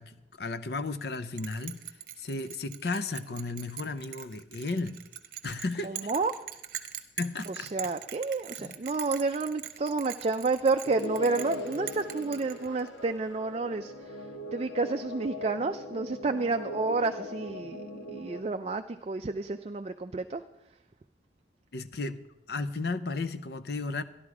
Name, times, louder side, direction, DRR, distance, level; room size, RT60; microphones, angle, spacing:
voice 1, 0.0-1.8 2.2-5.0 5.4-6.1 7.2-7.7 8.6-8.8 21.7-24.0, left 3 dB, 60° left, 12 dB, 0.6 m, -34 dB
Bell, 1.4-13.0, right 11 dB, 50° right, 0.9 m, -42 dB
voice 2, 5.8-6.3 7.5-13.9 14.5-20.4, right 3 dB, 35° right, 7 dB, 0.4 m, -30 dB
sound 1, 10.9-18.4, left 1 dB, 80° left, 1.2 m, -40 dB
13.0 x 11.5 x 4.8 m, 0.92 s
head